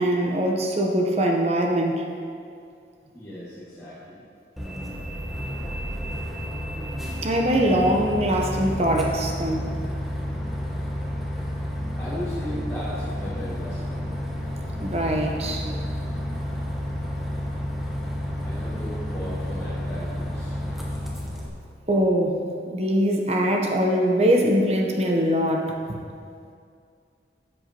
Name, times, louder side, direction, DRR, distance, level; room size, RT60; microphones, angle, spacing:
voice 1, 0.0-2.0 7.2-9.7 14.8-15.7 21.9-22.4 22.7-26.0, equal, 35° right, 1 dB, 0.9 m, -22 dB
voice 2, 3.1-4.2 12.0-14.0 18.4-20.6, equal, 15° left, -12 dB, 1.8 m, -36 dB
Bus, 4.6-21.5, equal, ahead, 1.0 m, -31 dB
13.0 x 7.8 x 2.9 m, 2.3 s
head